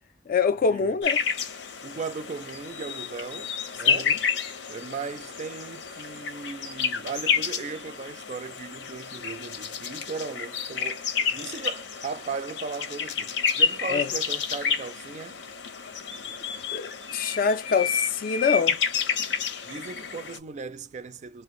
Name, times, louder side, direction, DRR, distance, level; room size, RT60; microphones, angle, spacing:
voice 1, 0.3-1.2 3.9-4.0 13.9-14.1 16.7-18.8, left 5 dB, 50° left, 0.4 m, -25 dB
sound 1, 1.0-20.4, left 6 dB, 80° left, 0.8 m, -30 dB
voice 2, 1.8-4.2 4.7-15.4 19.6-21.4, right 4 dB, 40° right, 0.4 m, -37 dB
2.5 x 2.2 x 3.7 m
head